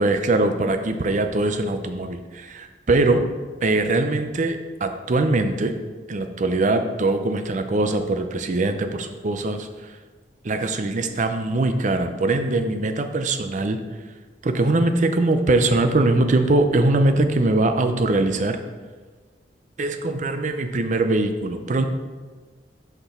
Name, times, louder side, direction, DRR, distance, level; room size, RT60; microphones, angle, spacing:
voice 1, 0.0-3.2 3.6-5.7 6.1-9.7 10.4-13.8 14.4-18.6 19.8-21.9, right 2 dB, 45° right, 7 dB, 0.5 m, -22 dB
6.0 x 5.6 x 4.3 m, 1.4 s
head